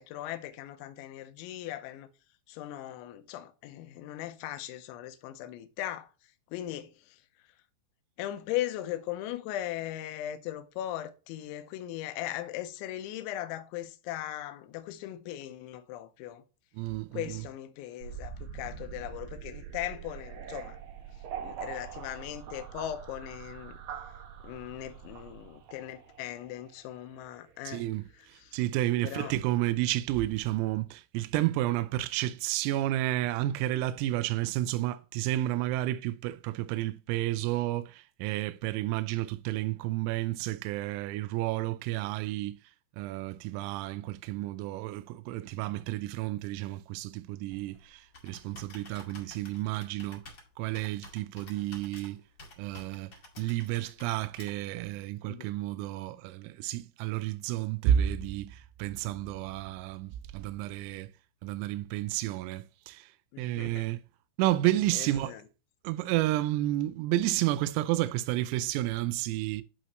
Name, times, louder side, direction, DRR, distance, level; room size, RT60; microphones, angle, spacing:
voice 1, 0.0-2.1 2.5-6.1 6.5-7.2 8.2-16.4 17.1-20.8 21.4-23.8 24.4-27.9 28.2-28.5 29.0-29.3 55.3-55.5 63.3-63.8 64.9-65.4, left 13 dB, 80° left, 3.0 m, -38 dB
voice 2, 16.8-17.4 27.7-42.6 43.0-50.2 50.6-52.2 52.6-61.1 61.4-63.1 63.4-64.0 64.4-65.4 65.8-69.6, right 14 dB, 85° right, 3.3 m, -31 dB
sound 1, 18.0-28.0, right 8 dB, 65° right, 3.4 m, -44 dB
Computer keyboard, 47.5-54.8, left 2 dB, 60° left, 1.1 m, -52 dB
11.0 x 4.2 x 3.1 m
omnidirectional pair, 5.9 m